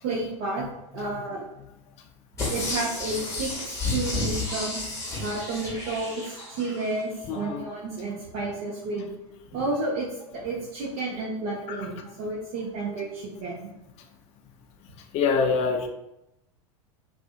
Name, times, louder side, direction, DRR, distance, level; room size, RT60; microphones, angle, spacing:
voice 1, 0.0-0.6 0.9-1.4 2.5-4.8 5.2-9.1 9.5-13.7, right 2 dB, 50° right, -5 dB, 0.6 m, -31 dB
sound 1, 2.4-6.8 7.2-7.3, left 3 dB, 20° left, 0.8 m, -31 dB
voice 2, 15.1-15.9, left 5 dB, 40° left, 4 dB, 0.4 m, -23 dB
2.6 x 2.4 x 2.4 m, 0.90 s
hypercardioid pair, 95°, 17 cm